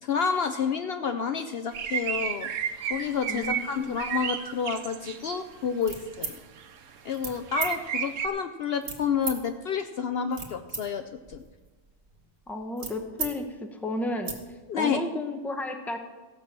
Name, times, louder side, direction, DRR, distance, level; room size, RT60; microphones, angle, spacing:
voice 1, 0.0-2.5 2.9-6.4 7.0-11.4 14.7-15.0, left 6 dB, 60° left, 8 dB, 0.7 m, -29 dB
sound 1, 1.7-5.4 6.0-6.1 6.6-6.7 7.1-7.2 7.5-8.3, right 8 dB, 80° right, 1.1 m, -32 dB
voice 2, 3.3-4.0 7.3-7.4 12.5-14.4 14.7-16.0, left 1 dB, ahead, 5 dB, 0.8 m, -33 dB
sound 2, 5.8-6.4 7.1-7.3 7.6-7.7 8.8-9.4 10.1-10.8 11.2-13.3 13.7-13.8 14.1-14.4, right 4 dB, 60° right, 1.6 m, -36 dB
15.0 x 5.8 x 7.4 m, 1.3 s
omnidirectional pair, 1.3 m